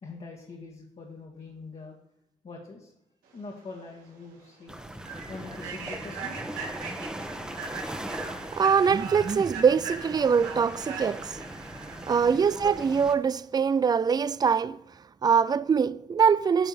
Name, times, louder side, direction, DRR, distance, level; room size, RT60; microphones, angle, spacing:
voice 1, 0.0-2.0 2.4-2.9 3.3-4.8 5.3-6.4, left 3 dB, 45° left, 1.8 m, -43 dB
Human voice / Train, 3.7-3.8 4.2-4.4 4.9-12.5, right 5 dB, 85° right, 1.9 m, -40 dB
sound 1, 4.7-13.1, right 1 dB, 5° right, 1.2 m, -40 dB
voice 2, 8.5-11.4 12.1-14.8 15.2-16.7, right 6 dB, 30° right, 0.4 m, -23 dB
9.0 x 4.5 x 6.9 m
supercardioid pair, 55°, 15 cm